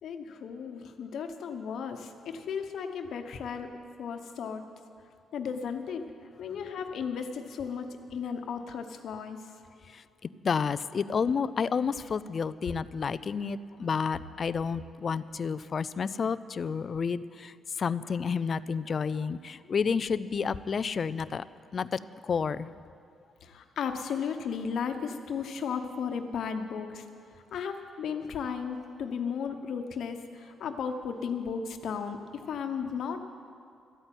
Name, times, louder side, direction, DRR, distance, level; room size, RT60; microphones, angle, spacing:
voice 1, 0.0-3.7 4.0-4.6 5.3-6.1 6.4-9.5 18.0-18.2 23.4-27.1 27.5-33.2, left 6 dB, 70° left, 6 dB, 1.1 m, -35 dB
voice 2, 10.2-17.5 17.8-21.4 21.7-22.7, left 6 dB, 45° left, 16 dB, 0.4 m, -30 dB
13.5 x 9.0 x 8.9 m, 2.4 s
cardioid pair, 105°, 0 cm